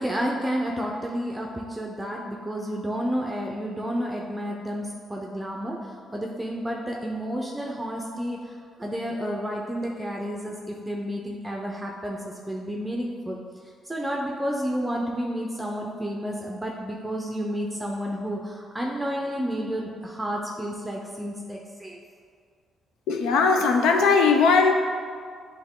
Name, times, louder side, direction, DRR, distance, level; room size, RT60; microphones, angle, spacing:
voice 1, 0.0-5.8 6.1-8.5 8.8-13.4 13.8-22.0, equal, 10° right, -1 dB, 0.6 m, -31 dB
voice 2, 23.1-24.7, left 4 dB, 85° left, 4 dB, 0.6 m, -19 dB
8.6 x 3.1 x 3.7 m, 2.1 s
cardioid pair, 90°, 0 cm